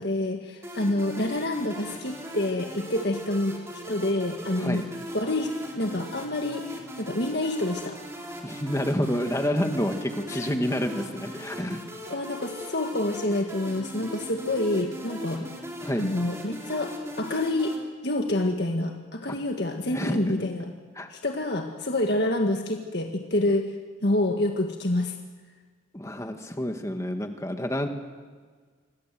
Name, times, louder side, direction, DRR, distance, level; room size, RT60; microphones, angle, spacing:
voice 1, 0.0-3.6 3.9-4.8 5.1-8.0 10.2-10.5 12.1-15.4 16.0-17.8 18.0-20.7 21.1-23.7 24.0-25.2, left 1 dB, 55° left, 3 dB, 1.8 m, -27 dB
sound 1, 0.6-17.8, equal, 15° right, 3.6 m, -39 dB
voice 2, 8.4-11.8 15.3-15.4 15.8-16.0 19.9-20.2 21.0-21.1 25.9-27.9, equal, 15° left, 5 dB, 2.0 m, -28 dB
26.5 x 24.5 x 7.7 m, 1.6 s
head